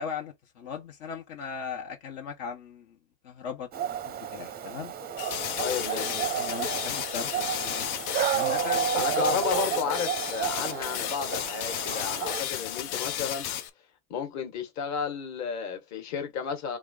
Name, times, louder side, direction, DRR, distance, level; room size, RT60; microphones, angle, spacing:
voice 1, 0.0-3.0 3.2-3.7 4.0-4.9 5.9-7.9 8.3-9.4, left 6 dB, 65° left, 1.4 m, -38 dB
Dog, 3.7-12.4, right 9 dB, 20° right, 0.5 m, -31 dB
sound 1, 5.2-13.7, left 11 dB, 85° left, 0.9 m, -33 dB
voice 2, 5.6-6.2 8.9-13.5 14.1-16.8, left 7 dB, 40° left, 1.6 m, -32 dB
3.8 x 3.2 x 3.9 m
supercardioid pair, 140°, 43 cm